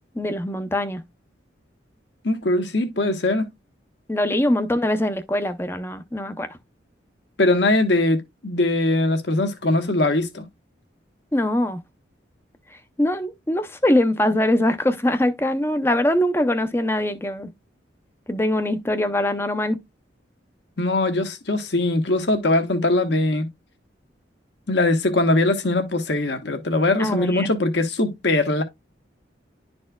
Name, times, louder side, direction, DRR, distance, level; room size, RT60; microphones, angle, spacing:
voice 1, 0.2-1.0 4.1-6.5 11.3-11.8 13.0-17.5 18.3-19.8 27.0-27.5, left 1 dB, 10° left, 0.6 m, -22 dB
voice 2, 2.2-3.4 7.4-10.4 20.8-23.5 24.7-28.6, left 2 dB, 65° left, 1.2 m, -21 dB
11.0 x 4.3 x 2.3 m
head